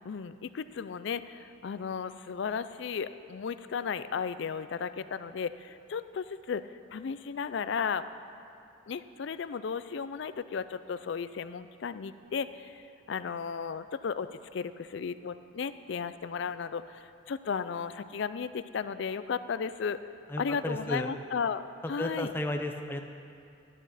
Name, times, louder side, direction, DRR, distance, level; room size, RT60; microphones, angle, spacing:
voice 1, 0.0-6.6 6.9-8.1 8.9-12.8 13.1-20.0 20.4-22.3, left 6 dB, 60° left, 13 dB, 0.4 m, -35 dB
voice 2, 20.3-21.1 21.8-23.0, left 1 dB, 10° left, 4 dB, 0.5 m, -33 dB
13.0 x 11.0 x 4.1 m, 2.5 s
head